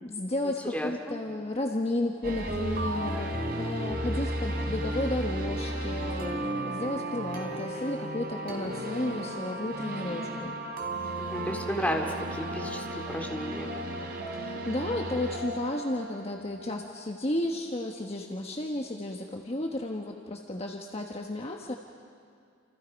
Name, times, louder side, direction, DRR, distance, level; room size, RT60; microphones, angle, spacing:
voice 1, 0.0-3.3 3.6-10.6 14.3-21.8, left 1 dB, 35° left, 2 dB, 1.2 m, -33 dB
voice 2, 0.7-1.1 11.2-13.7, equal, 10° left, 1 dB, 2.4 m, -33 dB
sound 1, 2.2-17.1, right 1 dB, 55° right, 3.1 m, -34 dB
28.5 x 28.5 x 5.3 m, 2.3 s
head